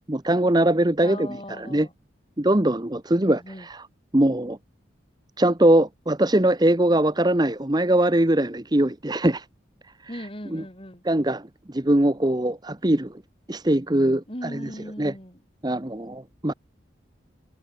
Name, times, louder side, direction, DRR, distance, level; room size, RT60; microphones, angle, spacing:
voice 1, 0.1-1.3 1.6-1.9 2.4-3.4 4.1-4.6 5.4-9.4 10.5-10.6 11.1-11.5 11.7-13.1 13.5-14.2 15.0-15.1 15.6-16.5, right 1 dB, 20° right, 0.9 m, -21 dB
voice 2, 1.0-1.9 3.2-3.7 10.1-11.0 14.3-15.4, equal, 30° left, 7.4 m, -38 dB
head